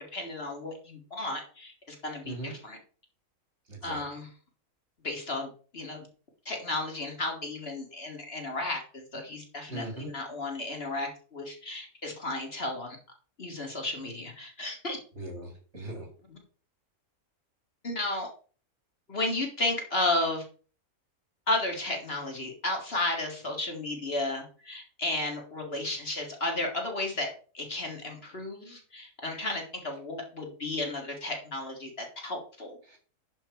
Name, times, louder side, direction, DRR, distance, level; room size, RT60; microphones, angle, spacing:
voice 1, 0.0-2.8 3.8-4.3 5.0-6.1 6.5-13.0 13.4-15.0 16.3-16.4 17.8-18.3 19.1-20.4 21.5-27.3 27.5-32.8, left 2 dB, 45° left, 2 dB, 2.0 m, -33 dB
voice 2, 3.7-4.0 9.7-10.1 15.2-16.1 32.9-33.0, right 2 dB, 50° right, 3 dB, 2.7 m, -39 dB
11.5 x 4.5 x 4.6 m, 0.40 s
omnidirectional pair, 1.5 m